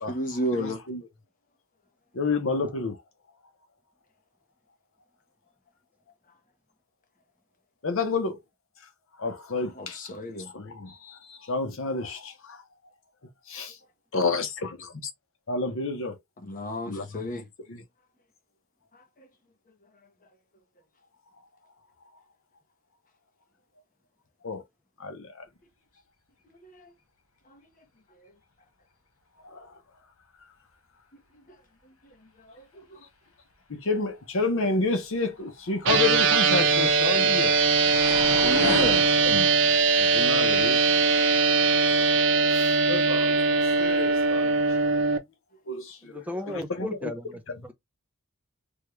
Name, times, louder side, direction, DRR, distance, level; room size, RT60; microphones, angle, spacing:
voice 1, 0.1-0.8 9.7-10.5 16.4-17.4 19.2-19.3 26.5-26.9 27.5-27.6 32.4-33.0 38.4-39.0, equal, 40° left, 0.9 m, -32 dB
voice 2, 0.6-1.0 2.2-3.0 7.8-8.4 9.2-10.0 10.5-10.9 11.5-12.3 14.1-14.9 15.5-16.1 16.9-17.3 17.7-17.8 24.4-24.6 25.0-25.2 29.5-29.7 33.7-37.5 39.2-39.5 40.0-40.8 41.7-41.8 42.1-42.2 42.5-43.4 43.8-44.6 45.7-47.1 47.5-47.6, left 3 dB, 65° left, 0.8 m, -29 dB
sound 1, 35.7-41.0, left 2 dB, 85° left, 1.4 m, -36 dB
sound 2, 35.8-45.2, right 4 dB, 60° right, 0.7 m, -21 dB
voice 3, 46.1-47.7, left 1 dB, 5° right, 0.5 m, -35 dB
3.5 x 2.3 x 3.0 m
head